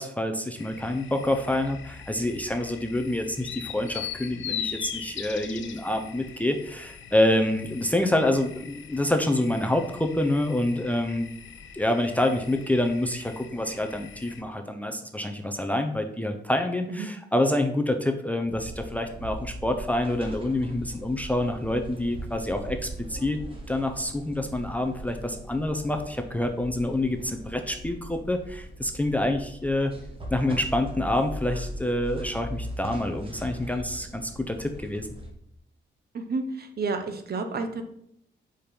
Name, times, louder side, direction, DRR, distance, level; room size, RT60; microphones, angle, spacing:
voice 1, 0.0-11.3 11.7-23.4 23.7-29.9 30.3-35.1, left 1 dB, 5° left, 6 dB, 0.5 m, -27 dB
sound 1, 0.6-14.4, left 8 dB, 75° left, 0.7 m, -41 dB
sound 2, 18.4-35.3, right 1 dB, 25° right, 1.3 m, -40 dB
voice 2, 36.1-37.8, right 4 dB, 50° right, 7 dB, 0.9 m, -30 dB
5.1 x 4.4 x 5.2 m, 0.72 s
cardioid pair, 125°, 20 cm